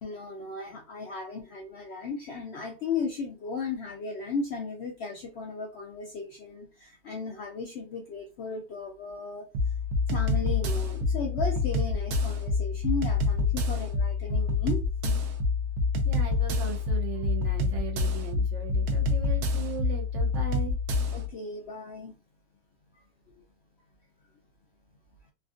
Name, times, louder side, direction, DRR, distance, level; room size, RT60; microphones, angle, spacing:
voice 1, 0.0-9.4 10.1-15.2 21.1-22.2 22.9-23.4, left 4 dB, 70° left, 1 dB, 0.6 m, -36 dB
sound 1, 9.5-21.3, left 3 dB, 80° right, 1.1 m, -27 dB
voice 2, 16.0-20.8, right 7 dB, 60° right, 1 dB, 0.9 m, -38 dB
3.4 x 2.4 x 2.4 m, 0.30 s
omnidirectional pair, 1.6 m